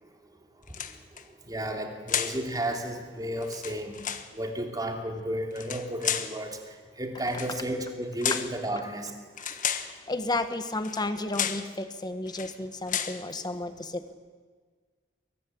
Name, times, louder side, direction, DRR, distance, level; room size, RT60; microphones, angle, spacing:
sound 1, 0.7-1.2 2.1-2.4 3.4-4.3 5.5-6.4 7.3-7.5 8.2-8.6 9.4-9.9 10.8-11.1 11.3-11.7 12.3-12.5 12.9-13.2, left 9 dB, 45° left, 1.3 m, -32 dB
voice 1, 1.5-3.9 4.3-6.6 7.0-9.1 9.4-9.5, right 1 dB, 20° right, 3 dB, 2.8 m, -32 dB
voice 2, 10.1-14.1, left 2 dB, 20° left, 9 dB, 1.4 m, -32 dB
22.5 x 18.5 x 8.6 m, 1.5 s
head